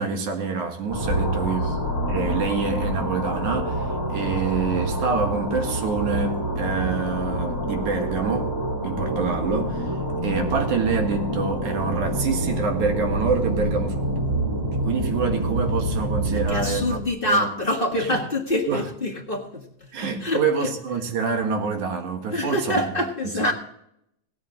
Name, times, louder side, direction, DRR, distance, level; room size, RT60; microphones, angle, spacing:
voice 1, 0.0-1.7 2.1-8.5 8.8-9.9 10.2-14.1 14.8-17.0 17.2-17.5 18.1-18.2 18.7-18.8 19.9-23.0, right 5 dB, 65° right, 3.0 m, -26 dB
sound 1, 0.9-17.1, right 1 dB, 10° right, 1.7 m, -27 dB
voice 2, 16.3-20.7 22.3-23.5, left 1 dB, 35° left, 0.8 m, -26 dB
17.5 x 8.9 x 3.8 m
omnidirectional pair, 3.8 m